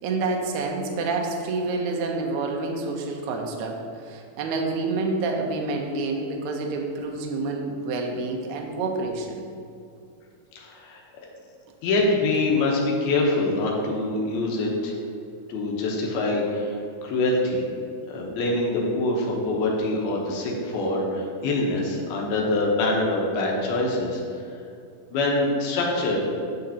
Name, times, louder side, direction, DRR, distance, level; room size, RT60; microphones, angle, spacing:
voice 1, 0.0-9.4, right 3 dB, 80° right, 1 dB, 1.7 m, -28 dB
voice 2, 10.6-11.0 11.8-15.0 15.5-16.8 17.0-17.6 18.1-24.4 25.1-26.3, left 2 dB, 85° left, -1 dB, 2.9 m, -24 dB
9.0 x 6.4 x 2.9 m, 2.4 s
omnidirectional pair, 4.3 m